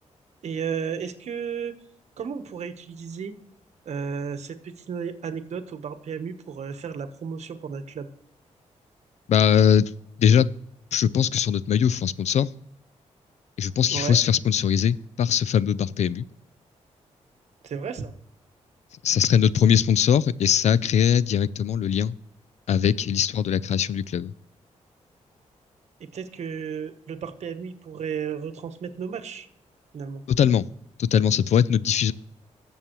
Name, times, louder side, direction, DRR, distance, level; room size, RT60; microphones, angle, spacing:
voice 1, 0.4-1.7 2.2-3.3 3.8-8.1 13.9-14.2 17.6-18.1 26.0-29.5 29.9-30.2, right 6 dB, 65° right, 9 dB, 1.1 m, -33 dB
voice 2, 9.3-9.9 10.2-10.5 10.9-12.5 13.6-16.3 19.0-22.1 22.7-24.3 30.3-30.7 31.0-32.1, left 8 dB, 65° left, 19 dB, 0.4 m, -21 dB
19.0 x 7.3 x 3.0 m, 0.73 s
cardioid pair, 115°, 12 cm